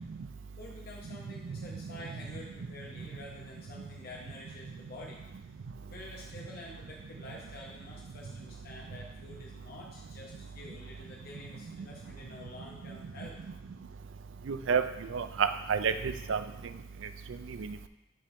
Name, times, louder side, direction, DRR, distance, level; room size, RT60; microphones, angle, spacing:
voice 1, 0.6-5.2 5.8-13.4, left 1 dB, 50° left, -3 dB, 0.9 m, -48 dB
voice 2, 14.5-14.8 15.1-16.4 17.6-17.9, right 6 dB, 75° right, 10 dB, 0.4 m, -29 dB
5.3 x 5.3 x 4.2 m, 0.89 s
head